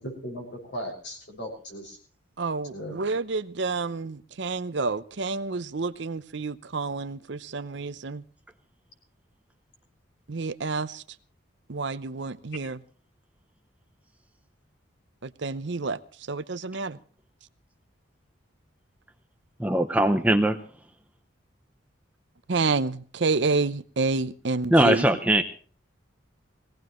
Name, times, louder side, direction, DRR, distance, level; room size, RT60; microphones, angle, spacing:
voice 1, 0.0-2.0 2.6-3.0, equal, 60° left, 6.3 m, -37 dB
voice 2, 2.4-8.2 10.3-11.0 11.7-12.8 15.2-16.0 16.3-17.0 22.5-25.0, right 3 dB, 60° right, 0.7 m, -29 dB
voice 3, 19.6-20.6 24.7-25.4, right 1 dB, 5° right, 0.7 m, -20 dB
21.5 x 17.0 x 3.1 m
head